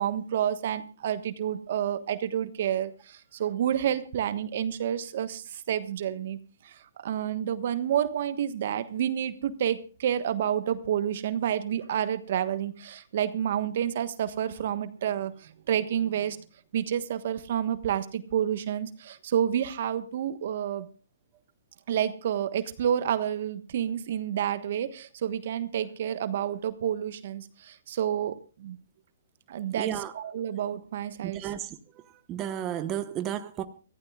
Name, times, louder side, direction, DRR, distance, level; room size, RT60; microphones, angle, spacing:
voice 1, 0.0-6.4 6.6-16.4 16.7-20.9 21.9-28.8 29.5-31.5, right 9 dB, 55° right, 11 dB, 1.3 m, -29 dB
voice 2, 29.7-30.1 31.2-31.8 32.3-33.6, right 11 dB, 25° right, 8 dB, 1.1 m, -32 dB
24.5 x 15.0 x 2.4 m, 0.35 s
hypercardioid pair, 145°, 0 cm